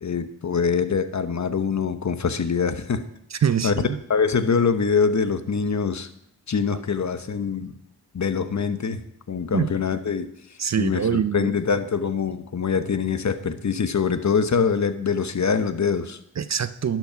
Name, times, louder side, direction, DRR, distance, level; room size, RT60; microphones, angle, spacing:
voice 1, 0.0-3.0 3.6-3.7 4.1-6.1 6.5-7.7 8.1-10.3 10.8-16.2, left 6 dB, 40° left, 11 dB, 1.0 m, -24 dB
voice 2, 3.3-4.0 9.5-9.7 10.6-11.5 16.4-17.0, right 8 dB, 40° right, 14 dB, 0.6 m, -24 dB
11.5 x 6.1 x 5.7 m, 0.74 s
supercardioid pair, 45°, 42 cm